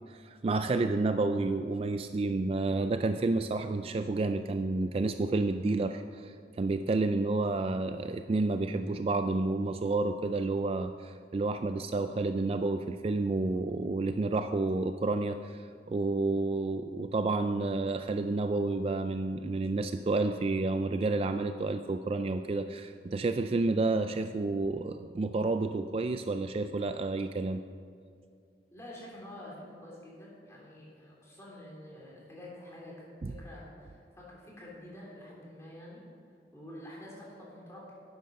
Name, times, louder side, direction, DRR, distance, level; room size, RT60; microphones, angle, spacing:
voice 1, 0.1-27.6 33.2-33.3, right 3 dB, 35° right, 8 dB, 0.3 m, -30 dB
voice 2, 28.7-36.0 36.5-37.9, left 1 dB, 15° left, -5 dB, 3.3 m, -48 dB
11.5 x 9.4 x 5.3 m, 2.3 s
head